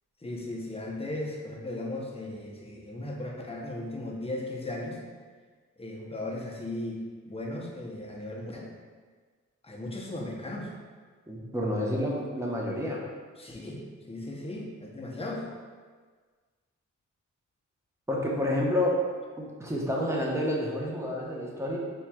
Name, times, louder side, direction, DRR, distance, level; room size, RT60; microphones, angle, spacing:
voice 1, 0.2-5.0 5.8-8.7 9.6-10.7 13.4-15.5, left 1 dB, 20° left, -1 dB, 0.7 m, -37 dB
voice 2, 11.3-13.0 18.1-19.0 19.4-21.8, left 1 dB, 10° right, -3 dB, 0.9 m, -29 dB
4.3 x 3.1 x 2.3 m, 1.5 s
cardioid pair, 55°, 32 cm